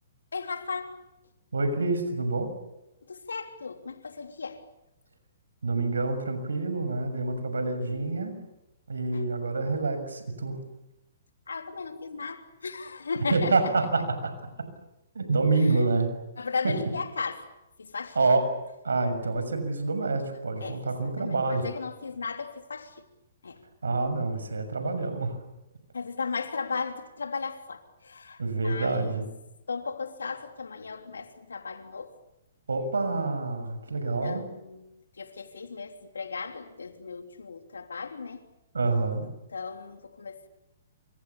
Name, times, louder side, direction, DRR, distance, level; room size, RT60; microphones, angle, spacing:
voice 1, 0.3-0.9 3.1-4.6 9.1-9.2 11.5-13.7 16.4-17.4 17.8-18.2 20.6-22.9 23.4-23.6 25.9-29.1 29.7-32.1 34.2-34.9 35.2-38.4 39.5-40.5, left 5 dB, 80° left, 3.2 m, -36 dB
voice 2, 1.5-2.5 5.6-8.3 8.9-10.6 13.3-14.3 15.1-16.1 16.6-16.7 18.1-18.4 18.8-21.7 23.8-25.4 28.4-29.3 32.7-34.5 38.7-39.3, right 3 dB, 80° right, 6.6 m, -27 dB
28.0 x 26.5 x 7.2 m
hypercardioid pair, 125°, 0 cm